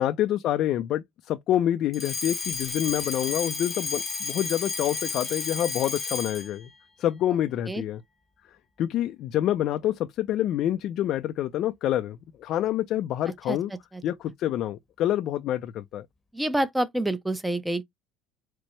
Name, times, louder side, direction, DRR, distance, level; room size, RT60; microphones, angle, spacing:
voice 1, 0.0-6.7 7.0-8.0 8.8-13.7 14.0-16.1, left 12 dB, 60° left, 0.4 m, -27 dB
Alarm, 1.9-6.6, left 4 dB, 20° left, 0.9 m, -32 dB
voice 2, 16.3-17.8, right 1 dB, 5° right, 0.5 m, -27 dB
4.5 x 2.0 x 3.1 m
cardioid pair, 110°, 0 cm